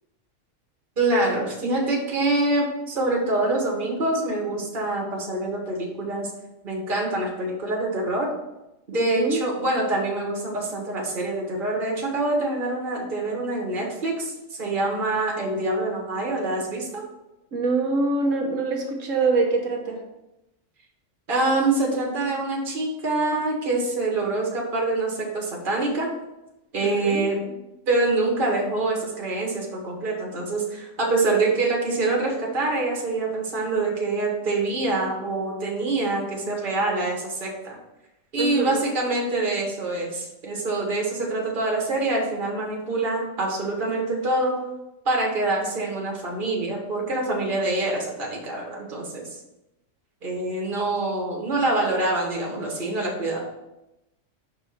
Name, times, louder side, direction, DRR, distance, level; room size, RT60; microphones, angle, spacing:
voice 1, 1.0-6.3 6.6-8.3 8.9-17.0 21.3-26.1 26.7-27.4 27.9-37.8 38.3-44.6 45.0-49.2 50.2-53.4, right 2 dB, 40° right, -2 dB, 1.6 m, -25 dB
voice 2, 8.9-9.4 17.5-20.0 26.8-27.2 38.4-38.8, right 3 dB, 75° right, 1 dB, 1.4 m, -24 dB
5.6 x 4.1 x 5.7 m, 0.95 s
omnidirectional pair, 1.3 m